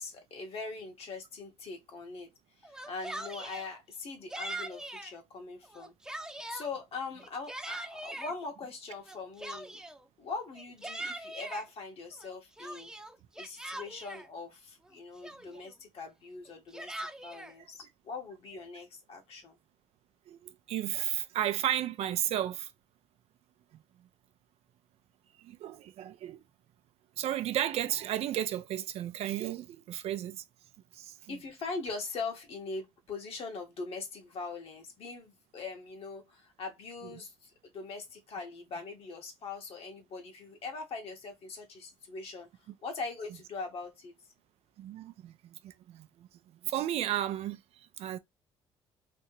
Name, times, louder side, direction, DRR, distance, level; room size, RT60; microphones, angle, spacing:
voice 1, 0.0-2.3 2.6-5.9 6.5-9.8 10.2-12.9 13.4-19.6 31.3-42.5 42.8-44.1, left 4 dB, 60° left, 1.5 m, -41 dB
Yell, 2.6-3.7 4.3-5.1 5.6-6.7 7.2-8.3 9.1-10.0 10.5-11.6 12.2-14.3 14.9-15.0 15.2-15.7 16.5-17.5, right 1 dB, 5° right, 0.7 m, -41 dB
voice 2, 20.3-22.7 23.7-23.8 25.4-26.4 27.2-30.4 30.9-31.4 44.8-46.3 46.6-48.2, right 12 dB, 65° right, 0.5 m, -34 dB
3.4 x 2.8 x 3.0 m
supercardioid pair, 80°, 11 cm